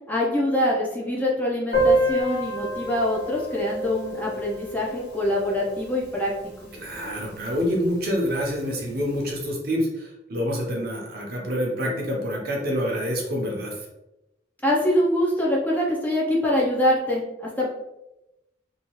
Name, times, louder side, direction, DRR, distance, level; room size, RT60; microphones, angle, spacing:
voice 1, 0.1-6.3 6.6-6.7 14.6-17.7, left 1 dB, 10° left, -4 dB, 0.5 m, -24 dB
Piano, 1.7-7.1 7.3-7.4 7.7-7.8 8.1-8.2 9.0-9.2, right 1 dB, 55° left, 1.1 m, -28 dB
voice 2, 6.7-13.8, equal, 55° right, -1 dB, 0.7 m, -27 dB
2.8 x 2.3 x 2.9 m, 0.92 s
head